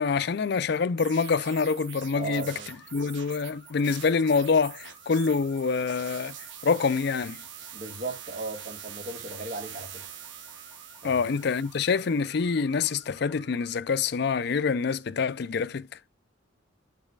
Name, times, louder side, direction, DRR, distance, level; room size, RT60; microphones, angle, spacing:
voice 1, 0.0-2.6 2.9-6.4 6.6-7.4 11.0-15.9, left 5 dB, 55° left, 0.4 m, -26 dB
sound 1, 1.0-12.4, right 10 dB, 65° right, 1.0 m, -44 dB
voice 2, 2.1-2.7 7.7-10.1 11.0-11.3, right 2 dB, 40° right, 1.7 m, -37 dB
sound 2, 2.3-13.7, left 1 dB, 5° left, 3.1 m, -55 dB
8.1 x 7.3 x 2.3 m
head